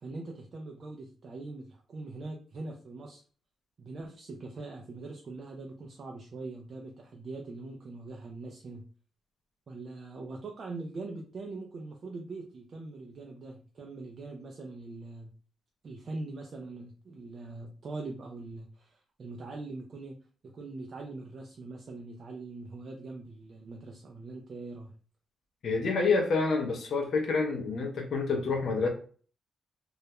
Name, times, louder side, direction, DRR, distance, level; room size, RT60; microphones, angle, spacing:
voice 1, 0.0-3.2 3.8-8.8 9.7-15.3 15.8-20.2 20.4-24.9, right 3 dB, 40° right, 1 dB, 0.3 m, -42 dB
voice 2, 25.6-28.9, left 4 dB, 50° left, 2 dB, 0.5 m, -28 dB
2.3 x 2.1 x 2.8 m, 0.42 s
wide cardioid pair, 165°, 0 cm